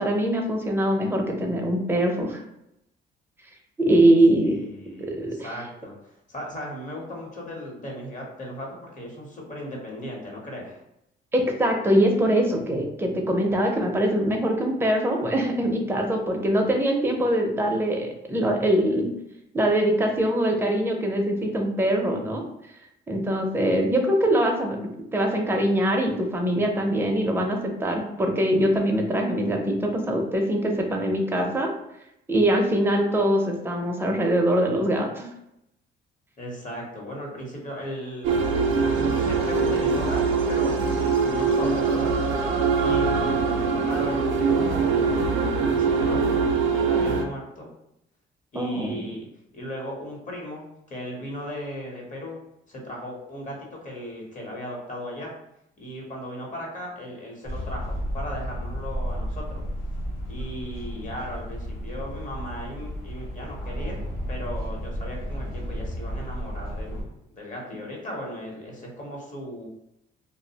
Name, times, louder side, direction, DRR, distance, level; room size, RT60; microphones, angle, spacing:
voice 1, 0.0-2.4 3.8-4.6 5.0-5.5 11.3-19.1 19.5-22.4 23.1-31.7 32.3-35.3 48.5-49.0, right 1 dB, 10° right, 2 dB, 0.5 m, -23 dB
voice 2, 4.4-10.8 36.4-38.5 38.9-42.1 42.8-47.7 48.5-49.3 49.5-52.4 52.7-55.3 55.8-59.6 60.3-67.1 67.3-69.7, equal, 40° left, -1 dB, 0.9 m, -37 dB
sound 1, 38.2-47.2, right 5 dB, 75° right, 0.4 m, -23 dB
sound 2, 57.4-67.0, equal, 90° left, 1.0 m, -33 dB
2.4 x 2.0 x 2.7 m, 0.81 s
cardioid pair, 90°, 20 cm